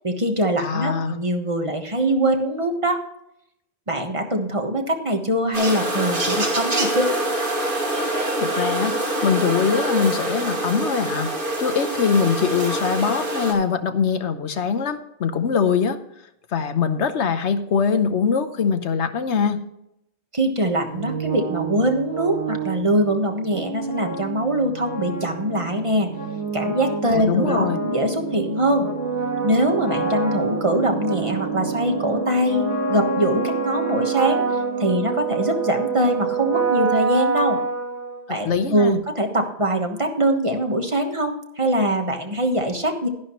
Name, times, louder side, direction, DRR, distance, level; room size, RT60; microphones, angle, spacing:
voice 1, 0.0-3.0 3.9-7.2 20.3-26.1 26.5-28.9 29.4-34.4 34.8-37.6 38.3-43.1, right 1 dB, 30° right, 4 dB, 1.2 m, -23 dB
voice 2, 0.6-1.2 8.4-8.9 9.2-11.3 11.6-16.0 16.5-19.6 27.1-27.8 38.3-39.0, left 6 dB, 85° left, 10 dB, 1.2 m, -22 dB
sound 1, 5.5-13.5, right 1 dB, 50° right, 2.4 m, -25 dB
sound 2, 20.8-38.5, right 4 dB, 80° right, 2.2 m, -27 dB
12.0 x 11.0 x 3.0 m, 0.78 s
omnidirectional pair, 1.1 m